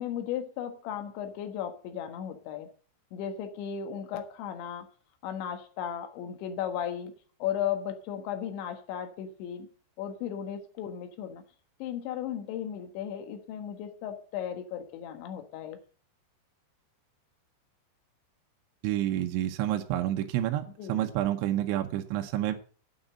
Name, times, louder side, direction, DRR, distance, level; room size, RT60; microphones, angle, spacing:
voice 1, 0.0-2.7 3.1-4.9 5.2-7.1 7.4-9.7 10.0-11.4 11.8-15.8 20.8-21.1, left 9 dB, 75° left, 6 dB, 3.6 m, -35 dB
voice 2, 18.8-20.6 20.9-22.6, right 12 dB, 80° right, 5 dB, 3.1 m, -29 dB
9.0 x 7.8 x 7.5 m, 0.42 s
omnidirectional pair, 5.6 m